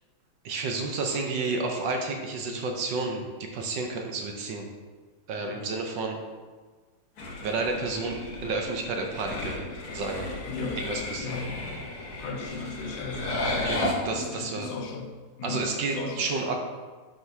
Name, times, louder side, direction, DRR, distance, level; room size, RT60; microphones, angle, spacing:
voice 1, 0.4-4.7 5.3-6.2 7.4-9.7 9.9-10.4 10.8-11.4 13.6-14.7 15.4-16.6, right 3 dB, 70° right, 2 dB, 1.3 m, -31 dB
sound 1, 7.2-13.9, left 2 dB, 55° left, 1.3 m, -34 dB
voice 2, 10.5-10.8 11.2-11.5 12.2-13.6 13.9-15.1 15.4-16.3, left 4 dB, 85° left, 2 dB, 1.7 m, -36 dB
10.5 x 3.9 x 2.7 m, 1.4 s
omnidirectional pair, 2.3 m